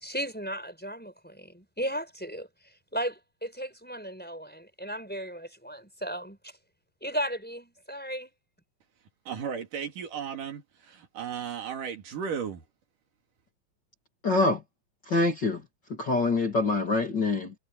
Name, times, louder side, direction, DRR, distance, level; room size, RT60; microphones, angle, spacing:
voice 1, 0.0-2.5 2.9-6.4 7.0-8.3, equal, 5° left, 4.5 m, -35 dB
voice 2, 9.3-12.6, right 7 dB, 65° right, 3.8 m, -35 dB
voice 3, 14.2-14.6 15.1-15.6 16.0-17.5, left 3 dB, 35° left, 2.6 m, -25 dB
omnidirectional pair, 4.0 m